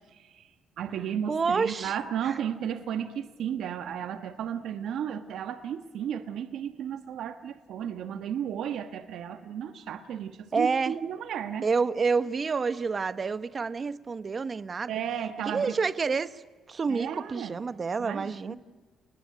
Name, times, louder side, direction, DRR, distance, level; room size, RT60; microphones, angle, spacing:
voice 1, 0.1-0.5 0.8-11.7 14.9-15.8 16.9-17.6 18.0-18.6, right 9 dB, 75° right, 1.4 m, -34 dB
voice 2, 1.3-1.9 2.2-2.3 10.5-10.9 11.6-15.0 15.5-16.4 16.7-18.6, right 5 dB, 35° right, 1.0 m, -28 dB
30.0 x 20.0 x 9.4 m
cardioid pair, 90°, 0 cm